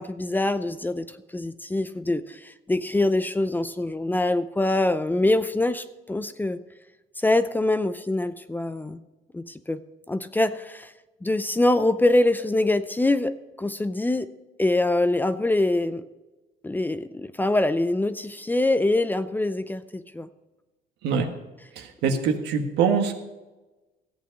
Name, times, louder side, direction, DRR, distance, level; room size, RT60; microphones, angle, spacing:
voice 1, 0.0-6.6 7.2-9.0 9.3-9.8 10.1-10.9 11.2-14.3 14.6-16.0 16.6-20.3 22.0-22.2, left 2 dB, 10° left, 12 dB, 0.6 m, -24 dB
voice 2, 21.8-23.2, right 6 dB, 85° right, 5 dB, 1.6 m, -23 dB
14.5 x 8.3 x 5.3 m, 1.1 s
cardioid pair, 110°, 17 cm